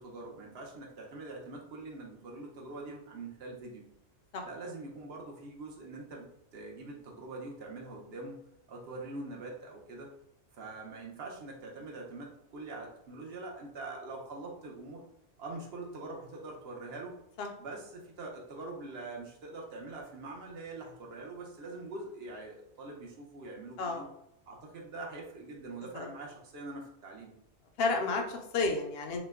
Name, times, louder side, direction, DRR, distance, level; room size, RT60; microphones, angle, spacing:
voice 1, 0.0-3.8 4.4-8.4 8.7-10.1 10.5-15.0 15.4-17.2 17.6-24.1 24.5-27.3, right 2 dB, 65° right, 0 dB, 0.9 m, -44 dB
voice 2, 27.8-29.2, left 3 dB, 65° left, 3 dB, 0.8 m, -31 dB
2.9 x 2.1 x 3.4 m, 0.80 s
omnidirectional pair, 1.2 m